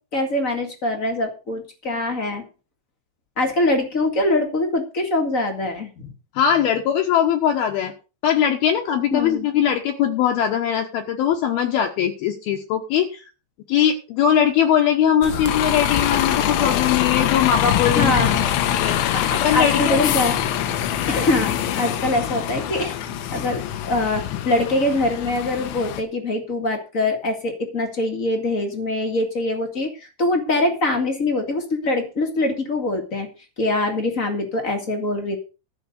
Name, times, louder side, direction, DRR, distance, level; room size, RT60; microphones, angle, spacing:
voice 1, 0.1-2.4 3.4-6.1 9.1-9.5 17.9-18.4 19.1-20.4 21.1-22.9 23.3-33.3 33.6-35.4, left 2 dB, 45° left, 4 dB, 1.0 m, -23 dB
voice 2, 6.3-7.9 8.2-13.2 13.7-18.3 18.7-19.0 19.4-20.1, left 9 dB, 70° left, 3 dB, 2.7 m, -20 dB
Bus, 15.2-26.0, left 10 dB, 90° left, 3.4 m, -24 dB
13.5 x 5.3 x 8.1 m, 0.33 s
omnidirectional pair, 5.1 m